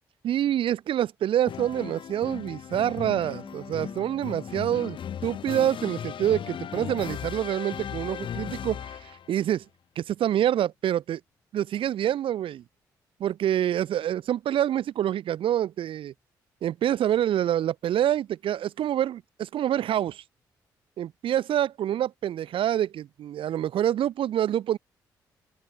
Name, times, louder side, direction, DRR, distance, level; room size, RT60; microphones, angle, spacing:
voice 1, 0.2-5.0 5.2-9.6 10.0-11.2 11.5-12.6 13.2-16.1 16.6-20.2 21.0-24.8, right 11 dB, 65° right, 2.7 m, -26 dB
sound 1, 1.5-9.3, left 9 dB, 60° left, 3.2 m, -37 dB
Harp, 3.1-6.5 6.8-7.9, left 2 dB, 20° left, 7.2 m, -49 dB
open air
hypercardioid pair, 45°, 9 cm